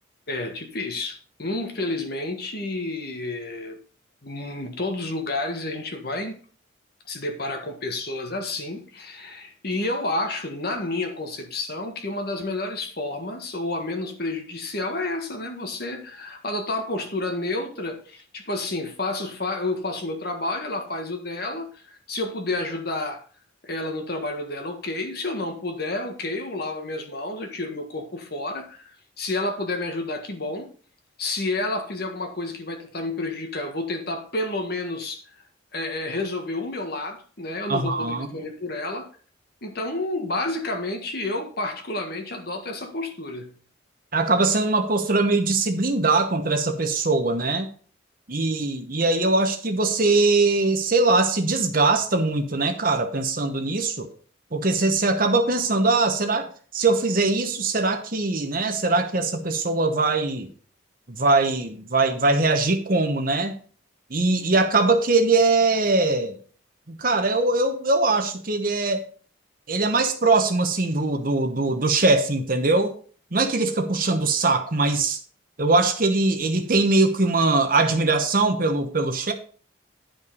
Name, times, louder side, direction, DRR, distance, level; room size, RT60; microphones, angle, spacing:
voice 1, 0.3-3.8 4.2-6.4 7.1-23.2 23.6-30.7 31.2-35.3 35.7-39.1 39.6-43.5, left 2 dB, 50° left, 1.6 m, -30 dB
voice 2, 37.7-38.3 44.1-47.7 48.3-54.1 54.5-60.5 61.1-63.6 64.1-66.4 66.9-69.0 69.7-73.0 73.3-75.2 75.6-79.3, right 3 dB, 45° right, 1.0 m, -21 dB
10.0 x 5.7 x 5.4 m
head